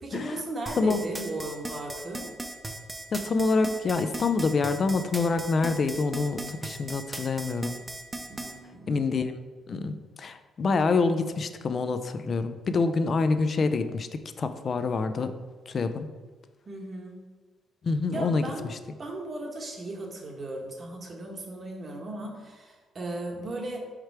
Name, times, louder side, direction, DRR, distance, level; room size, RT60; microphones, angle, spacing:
voice 1, 0.0-2.3 8.3-9.0 16.7-17.2 18.1-18.7 19.0-23.8, right 2 dB, 40° right, 1 dB, 1.2 m, -36 dB
sound 1, 0.7-8.5, right 2 dB, 20° right, 0.6 m, -37 dB
voice 2, 3.1-7.8 8.9-9.3 9.7-15.3 15.7-16.1 17.8-18.4, left 4 dB, 45° left, 10 dB, 0.5 m, -26 dB
5.0 x 4.4 x 4.6 m, 1.3 s
cardioid pair, 90°, 0 cm